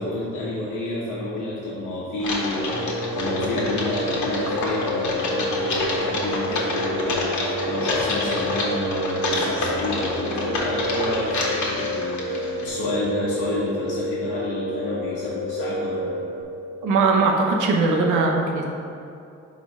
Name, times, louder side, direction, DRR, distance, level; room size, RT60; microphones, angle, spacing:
voice 1, 0.0-16.2, left 1 dB, 90° left, -8 dB, 1.2 m, -29 dB
Typing, 2.2-12.7, left 2 dB, 70° left, 1.3 m, -28 dB
Piano, 2.7-16.4, left 1 dB, 65° right, 1.4 m, -29 dB
voice 2, 16.8-18.6, right 3 dB, 80° right, 0 dB, 0.9 m, -20 dB
4.6 x 4.3 x 5.3 m, 2.5 s
cardioid pair, 90°, 30 cm